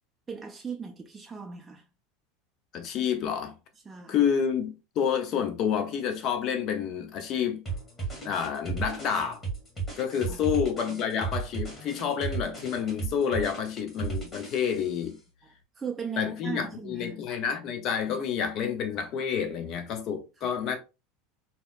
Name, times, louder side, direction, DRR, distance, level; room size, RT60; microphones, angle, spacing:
voice 1, 0.3-1.8 3.9-4.2 10.3-10.4 15.8-17.2 20.4-20.5, right 6 dB, 20° right, 0.4 m, -37 dB
voice 2, 2.7-3.5 4.1-7.6 8.2-9.4 10.0-15.2 16.2-20.8, left 7 dB, 50° left, 0.6 m, -29 dB
sound 1, 7.7-15.0, right 4 dB, 25° left, 1.5 m, -35 dB
2.8 x 2.1 x 2.4 m
hypercardioid pair, 85°, 0 cm